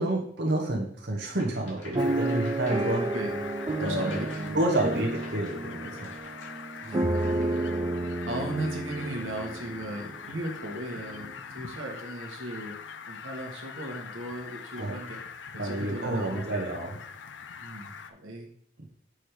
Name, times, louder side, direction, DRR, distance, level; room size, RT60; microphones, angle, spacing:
voice 1, 0.0-3.1 3.8-4.2 4.5-6.1 14.7-15.0 15.6-17.0, right 1 dB, 55° right, -2 dB, 1.1 m, -29 dB
sound 1, 1.3-7.8, left 2 dB, 80° left, 2.5 m, -51 dB
sound 2, 1.9-10.1 10.7-10.8 11.0-11.3, right 2 dB, 20° right, 0.4 m, -31 dB
Fowl, 2.0-18.1, left 6 dB, 65° left, 0.5 m, -43 dB
voice 2, 3.8-4.6 6.8-7.7 8.3-12.8 13.1-15.2 15.5-16.5 17.6-18.5, right 1 dB, 90° right, 1 dB, 1.4 m, -37 dB
6.4 x 3.4 x 5.9 m, 0.65 s
head